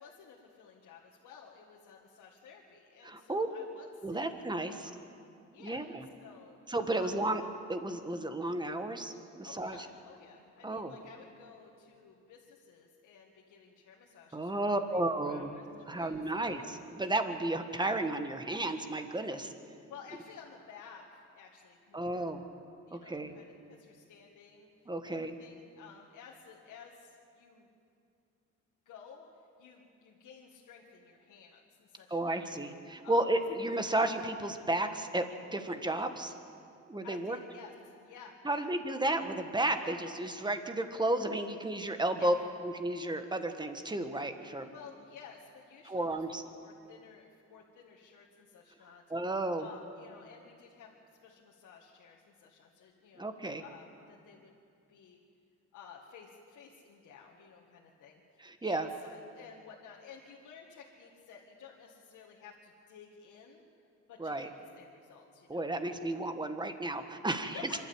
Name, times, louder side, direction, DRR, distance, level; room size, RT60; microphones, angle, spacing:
voice 1, 0.0-4.6 4.8-5.1 5.5-5.8 6.2-6.6 6.9-7.4 9.4-16.7 19.9-22.3 22.9-24.7 25.1-27.7 28.9-29.3 29.6-32.5 33.0-33.3 37.0-38.7 42.2-42.4 44.7-46.2 46.6-49.0 49.6-50.9 51.2-53.3 53.6-54.5 54.9-55.2 55.7-63.6 64.1-64.5 64.8-65.9 67.5-67.8, left 6 dB, 80° left, -2 dB, 2.0 m, -53 dB
voice 2, 3.0-3.5 4.0-4.9 5.6-6.0 6.7-7.4 7.7-9.8 10.6-10.9 14.3-15.5 15.9-19.5 21.9-22.4 22.9-23.3 24.9-25.3 32.1-35.2 35.5-36.3 36.9-37.4 38.4-42.3 42.6-44.7 45.9-46.4 49.1-49.7 53.2-53.6 58.4-58.9 64.2-64.5 65.5-67.6, right 1 dB, 15° right, 7 dB, 1.6 m, -33 dB
26.0 x 12.0 x 8.9 m, 2.5 s
cardioid pair, 90°, 30 cm